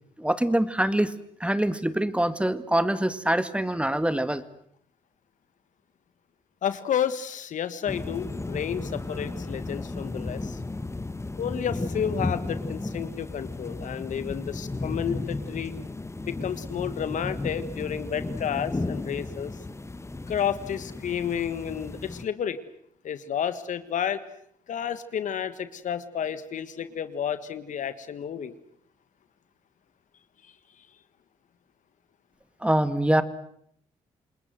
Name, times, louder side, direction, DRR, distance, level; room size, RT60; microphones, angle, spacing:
voice 1, 0.2-1.1 1.4-4.4 32.6-33.2, right 1 dB, 10° right, 13 dB, 2.0 m, -24 dB
voice 2, 6.6-10.6 11.4-15.7 16.2-19.5 20.3-22.6 23.0-24.2 24.7-28.5 30.4-30.5, left 8 dB, 65° left, 13 dB, 1.6 m, -31 dB
sound 1, 7.9-22.3, left 2 dB, 20° left, 1.5 m, -34 dB
28.0 x 20.5 x 7.9 m, 0.68 s
supercardioid pair, 55°, 14 cm